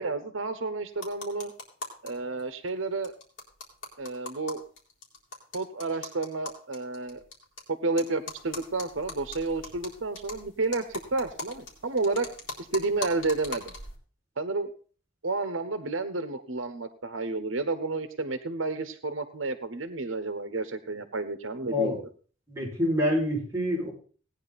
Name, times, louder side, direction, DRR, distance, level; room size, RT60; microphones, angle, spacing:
voice 1, 0.0-1.5 2.0-3.1 4.0-4.6 5.5-7.2 7.7-12.3 12.6-13.7 14.4-14.7 15.2-22.1, right 3 dB, 85° right, 10 dB, 1.1 m, -31 dB
sound 1, 0.9-2.1 2.4-2.5 2.7-2.8 3.0-7.6 8.0-14.0, left 2 dB, 65° left, 3.7 m, -41 dB
voice 2, 21.7-22.0 22.5-23.9, left 1 dB, 15° right, -3 dB, 6.0 m, -26 dB
17.5 x 9.8 x 4.2 m, 0.41 s
head